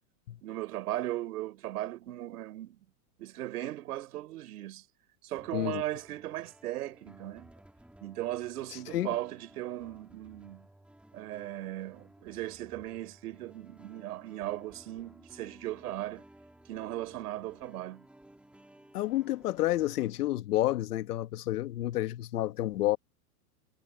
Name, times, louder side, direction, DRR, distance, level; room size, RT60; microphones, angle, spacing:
voice 1, 0.4-2.8 3.2-4.8 5.2-7.5 8.0-10.7 11.1-16.2 16.7-18.0, right 15 dB, 75° right, 4.9 m, -37 dB
sound 1, 5.4-20.0, right 1 dB, ahead, 4.8 m, -56 dB
voice 2, 18.9-23.0, left 15 dB, 80° left, 1.9 m, -30 dB
supercardioid pair, 145°, 46 cm